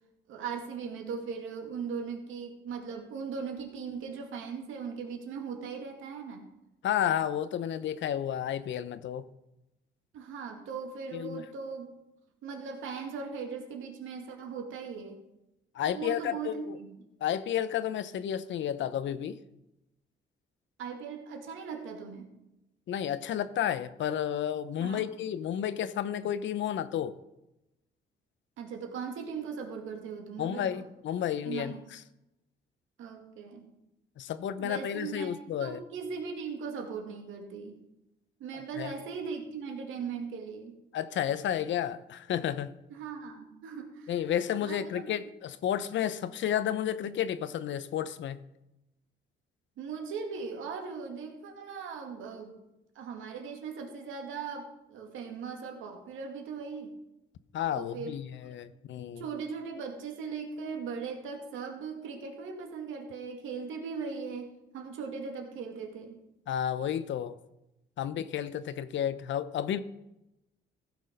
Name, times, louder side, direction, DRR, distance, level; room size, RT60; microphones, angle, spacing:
voice 1, 0.3-6.5 10.1-11.9 12.4-15.2 15.8-17.0 20.8-22.3 24.8-25.0 28.6-30.9 31.4-31.8 33.0-33.7 34.6-37.8 38.4-40.8 42.9-44.1 44.6-45.1 49.8-52.6 53.0-57.0 57.7-58.5 59.2-66.2, right 5 dB, 85° right, 3 dB, 2.3 m, -39 dB
voice 2, 6.8-9.2 11.1-11.4 15.7-16.5 17.2-19.4 22.9-27.2 30.4-32.0 34.2-35.8 38.8-38.9 40.9-42.7 44.1-48.4 57.5-59.2 66.5-67.4 68.0-69.8, left 10 dB, 70° left, 14 dB, 0.8 m, -31 dB
15.0 x 6.3 x 5.2 m, 0.91 s
cardioid pair, 90°, 20 cm